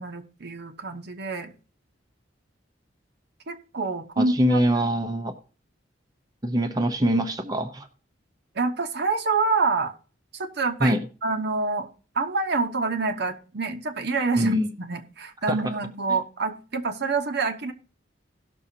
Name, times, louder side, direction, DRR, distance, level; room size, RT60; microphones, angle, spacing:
voice 1, 0.0-1.5 3.5-4.9 8.5-9.9 10.3-11.9 12.1-17.7, right 3 dB, 60° right, 5 dB, 1.0 m, -27 dB
voice 2, 4.2-5.3 6.4-7.9 10.8-11.0 14.4-14.7 15.4-15.6, equal, 20° right, 5 dB, 0.8 m, -23 dB
18.0 x 6.3 x 2.8 m, 0.38 s
head